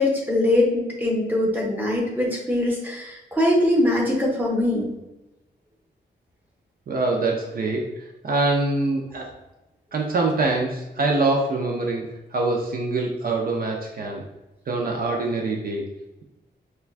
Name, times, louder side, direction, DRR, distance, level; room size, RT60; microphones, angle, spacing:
voice 1, 0.0-4.9, left 1 dB, 10° right, -3 dB, 0.8 m, -22 dB
voice 2, 6.9-9.3 9.9-14.2 14.7-15.8, right 2 dB, 55° right, 0 dB, 0.5 m, -24 dB
4.4 x 2.2 x 2.4 m, 0.97 s
wide cardioid pair, 150°, 18 cm